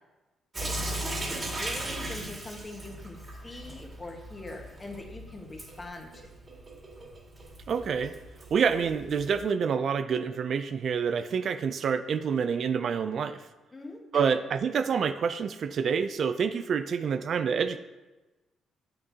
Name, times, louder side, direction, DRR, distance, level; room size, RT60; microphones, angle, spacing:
Sink (filling or washing) / Drip, 0.5-9.4, right 1 dB, 35° right, 2.1 m, -38 dB
voice 1, 0.6-6.3 13.7-14.3, left 2 dB, 25° left, 1 dB, 1.4 m, -43 dB
voice 2, 7.7-8.1 8.5-13.5 14.1-17.8, right 6 dB, 55° right, 10 dB, 0.4 m, -27 dB
7.8 x 6.7 x 2.8 m, 1.1 s
cardioid pair, 90°, 0 cm